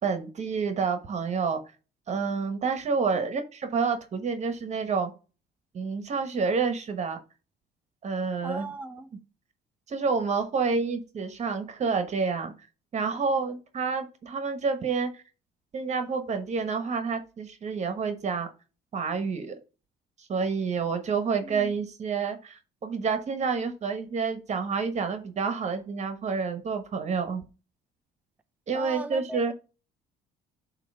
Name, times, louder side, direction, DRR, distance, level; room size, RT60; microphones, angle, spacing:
voice 1, 0.0-1.6 2.1-5.1 5.7-7.2 8.0-8.7 9.9-12.5 12.9-15.2 15.7-18.5 18.9-19.5 20.2-27.4 28.7-29.5, right 5 dB, 40° right, 1.2 m, -29 dB
voice 2, 8.4-9.1 21.4-21.7 28.7-29.5, right 3 dB, 10° right, 0.4 m, -38 dB
7.5 x 3.0 x 5.3 m
cardioid pair, 110°, 17 cm